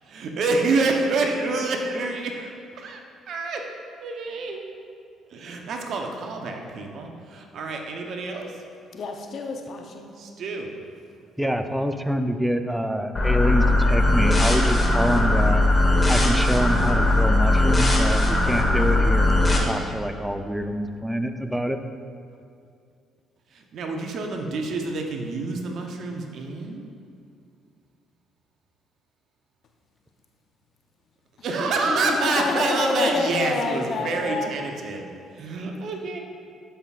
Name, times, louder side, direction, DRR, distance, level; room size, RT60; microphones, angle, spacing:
voice 1, 0.1-3.0 3.3-3.6 4.0-4.6 5.3-8.5 10.2-10.7 23.5-26.9 31.4-35.0 35.3-36.2, right 3 dB, 60° right, 3 dB, 0.9 m, -27 dB
voice 2, 8.9-10.1 31.6-34.5, left 4 dB, 55° left, 4 dB, 0.8 m, -28 dB
voice 3, 11.4-15.6 16.1-21.8, equal, 5° right, 7 dB, 0.6 m, -26 dB
sound 1, 13.1-19.6, left 2 dB, 30° left, 1.4 m, -19 dB
12.0 x 5.7 x 2.5 m, 2.4 s
hypercardioid pair, 55°, 0 cm